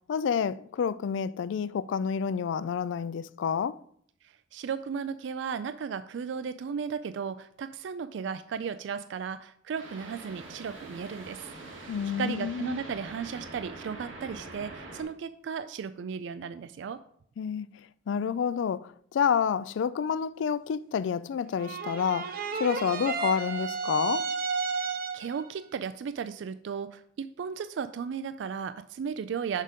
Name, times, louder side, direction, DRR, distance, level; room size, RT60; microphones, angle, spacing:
voice 1, 0.1-3.8 11.9-12.8 17.4-17.7 18.1-24.3, left 7 dB, 70° left, 0.3 m, -29 dB
voice 2, 4.2-11.5 11.8-17.0 24.7-29.6, right 6 dB, 65° right, 0.3 m, -35 dB
sound 1, 9.7-15.0, right 2 dB, 85° right, 2.0 m, -44 dB
sound 2, 21.6-25.4, right 4 dB, 50° right, 0.7 m, -32 dB
6.5 x 5.0 x 5.2 m
head